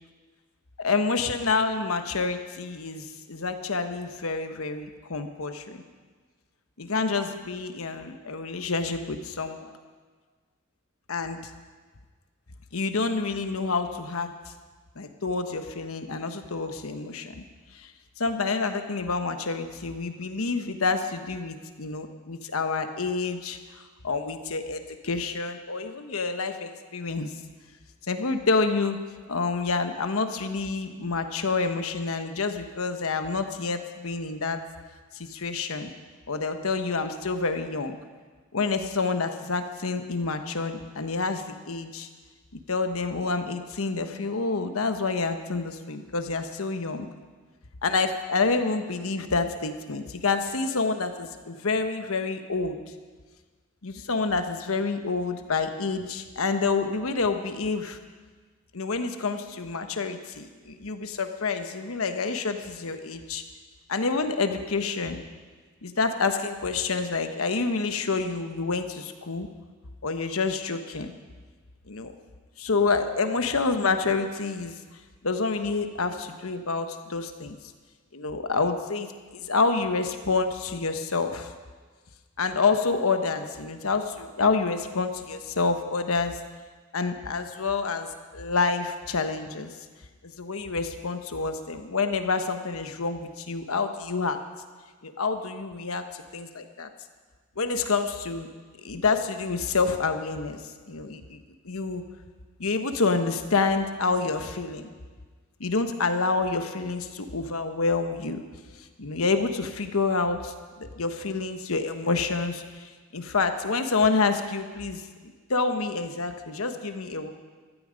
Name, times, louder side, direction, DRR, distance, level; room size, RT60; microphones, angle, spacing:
voice 1, 0.8-5.8 6.8-9.7 11.1-11.4 12.7-14.3 15.0-17.4 17.7-17.9 18.2-23.6 24.0-27.3 28.1-29.0 29.3-34.6 35.1-35.9 36.3-38.0 38.5-42.1 42.5-47.1 47.8-52.8 53.8-58.0 58.7-63.4 63.9-65.2 65.8-69.5 70.0-71.1 71.9-72.1 72.6-74.8 75.2-77.6 78.1-81.5 82.4-86.4 86.9-89.7 90.2-94.4 95.0-96.9 97.6-98.5 98.8-100.6 100.9-102.0 102.6-104.9 105.6-108.4 108.8-110.5 111.0-115.0 115.5-117.3, left 4 dB, 75° left, 7 dB, 1.1 m, -28 dB
14.5 x 13.0 x 5.2 m, 1.5 s
head